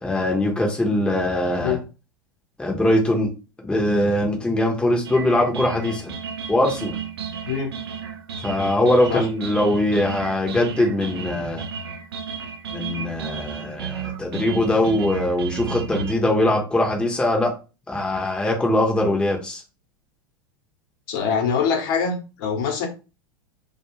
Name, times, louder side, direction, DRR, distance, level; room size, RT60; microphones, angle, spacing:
voice 1, 0.0-1.8 2.6-3.3 3.6-6.1 6.5-6.9 8.4-11.6 12.7-17.5 17.9-19.6, left 1 dB, 5° left, 0.7 m, -21 dB
sound 1, 5.0-16.1, right 7 dB, 75° right, 0.5 m, -33 dB
voice 2, 21.1-22.9, left 6 dB, 55° left, 0.9 m, -24 dB
2.3 x 2.3 x 3.0 m
figure-of-eight pair, 90°, 13 cm